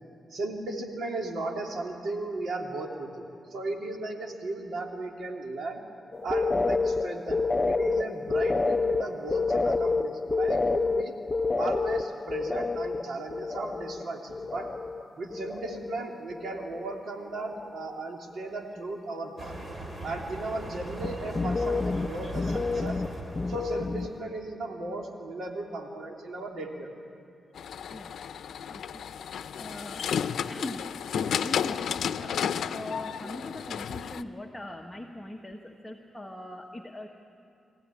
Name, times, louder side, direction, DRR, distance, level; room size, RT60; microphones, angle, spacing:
voice 1, 0.3-3.2 3.5-5.8 6.2-11.2 11.6-14.7 15.2-19.6 20.0-23.0 23.5-26.9 33.2-33.4, right 2 dB, 75° right, 1 dB, 3.0 m, -36 dB
sound 1, 6.1-15.1 15.3-16.0 16.3-17.0 17.3-17.8 21.0-24.2, left 3 dB, 25° left, 0.6 m, -29 dB
sound 2, 19.4-24.2, right 1 dB, 30° right, 3.4 m, -40 dB
sound 3, 27.6-34.2, left 8 dB, 85° left, 0.6 m, -32 dB
voice 2, 27.9-28.2 28.7-29.1 29.5-30.1 30.5-32.5 32.7-37.1, left 1 dB, 10° left, 2 dB, 1.4 m, -41 dB
25.0 x 16.0 x 9.9 m, 2.6 s
cardioid pair, 95°, 0 cm